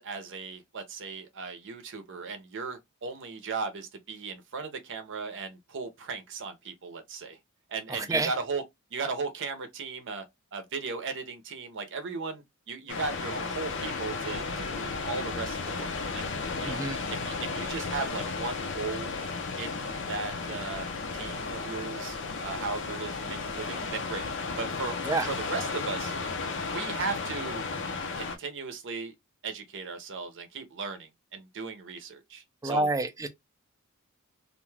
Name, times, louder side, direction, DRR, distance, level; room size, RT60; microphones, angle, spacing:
voice 1, 0.0-7.4 7.7-8.6 8.9-10.2 10.5-16.3 16.6-16.8 17.1-19.1 19.6-20.9 21.1-24.2 24.6-25.0 25.3-26.1 26.7-27.6 28.2-29.1 29.4-32.9, right 4 dB, 60° right, 0.7 m, -37 dB
voice 2, 7.9-8.3 16.6-17.0 25.0-25.3 32.6-33.3, right 2 dB, 15° right, 0.4 m, -28 dB
sound 1, 12.9-28.4, left 4 dB, 60° left, 0.6 m, -34 dB
2.5 x 2.3 x 3.1 m
head